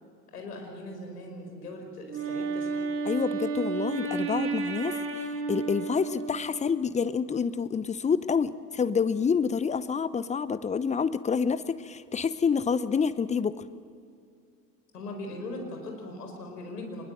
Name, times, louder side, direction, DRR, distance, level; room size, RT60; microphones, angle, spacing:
voice 1, 0.3-2.9 14.9-17.0, left 1 dB, 75° left, 3 dB, 4.9 m, -40 dB
Wind instrument woodwind instrument, 2.1-6.8, right 4 dB, 25° right, 2.7 m, -32 dB
voice 2, 3.1-13.6, left 6 dB, 15° left, 15 dB, 0.7 m, -28 dB
23.5 x 21.0 x 7.7 m, 2.5 s
figure-of-eight pair, 70°, 47 cm